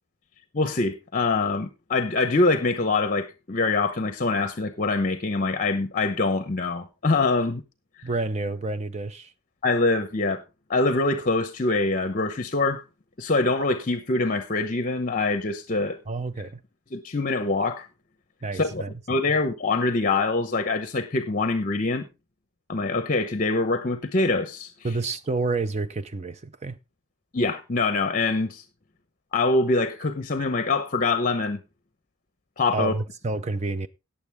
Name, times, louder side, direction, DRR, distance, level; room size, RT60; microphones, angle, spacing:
voice 1, 0.5-7.6 9.6-10.4 10.7-12.8 13.2-16.0 16.9-17.9 18.5-18.8 19.1-22.1 22.7-24.9 27.3-28.6 29.3-31.6 32.6-32.9, left 3 dB, 35° left, 0.9 m, -24 dB
voice 2, 8.0-9.3 16.1-16.6 18.4-18.9 24.8-26.8 32.7-33.9, right 3 dB, 30° right, 0.5 m, -29 dB
18.0 x 7.0 x 3.5 m
head